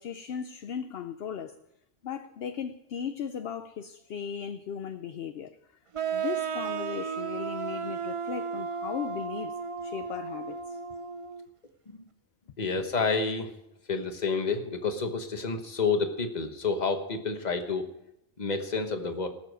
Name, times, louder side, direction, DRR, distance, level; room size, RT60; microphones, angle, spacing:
voice 1, 0.0-1.6 2.0-5.7 6.1-9.5 9.8-10.8, left 8 dB, 60° left, 9 dB, 0.8 m, -37 dB
sound 1, 5.9-11.5, right 6 dB, 45° right, 0.4 m, -34 dB
voice 2, 12.6-13.5 13.9-17.8 18.4-19.3, left 4 dB, 35° left, 6 dB, 1.3 m, -29 dB
17.5 x 7.3 x 6.4 m, 0.83 s
omnidirectional pair, 1.3 m